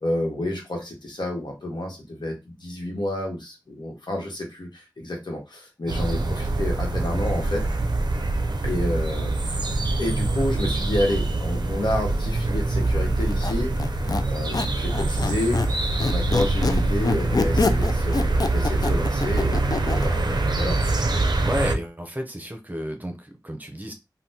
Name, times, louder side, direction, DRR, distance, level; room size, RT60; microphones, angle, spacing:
voice 1, 0.0-7.7 8.6-15.6 16.1-21.1, left 1 dB, 75° left, 1 dB, 1.1 m, -30 dB
sound 1, 5.9-21.8, right 2 dB, 65° right, 0.4 m, -24 dB
Squeak, 13.2-15.7 16.0-20.1, left 3 dB, 55° left, 0.3 m, -26 dB
voice 2, 21.4-23.9, equal, 20° right, 4 dB, 0.7 m, -31 dB
3.5 x 2.2 x 2.8 m, 0.23 s
wide cardioid pair, 50°, 8 cm